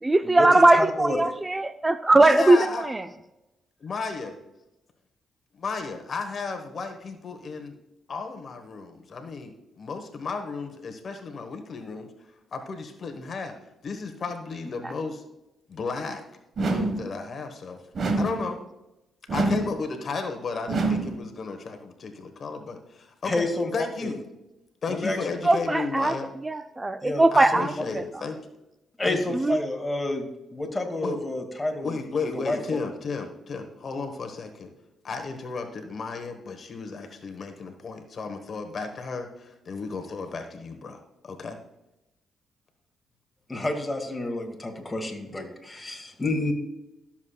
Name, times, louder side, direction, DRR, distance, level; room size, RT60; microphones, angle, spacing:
voice 1, 0.0-3.0 14.8-14.9 25.4-28.2 29.3-29.6, right 2 dB, 20° right, 10 dB, 0.4 m, -21 dB
voice 2, 0.7-1.2 23.2-23.7 24.0-24.1 24.9-25.2 27.0-27.2 27.6-27.7 29.0-32.0 32.3-32.8 43.5-46.5, left 2 dB, 20° left, 3 dB, 2.2 m, -29 dB
voice 3, 2.2-2.8 3.8-4.3 5.6-7.8 8.1-12.1 12.5-13.5 13.8-15.2 15.7-16.2 16.6-17.8 18.2-18.6 19.3-23.5 23.7-24.2 24.8-26.3 27.3-28.4 29.0-29.4 31.0-31.2 31.8-34.7 35.0-41.6, left 4 dB, 55° left, 6 dB, 1.3 m, -34 dB
sound 1, 16.6-17.1 18.0-18.5 19.3-19.8 20.7-21.2, right 2 dB, 55° right, 1.5 m, -26 dB
13.0 x 7.2 x 2.4 m, 0.94 s
cardioid pair, 65°, 0 cm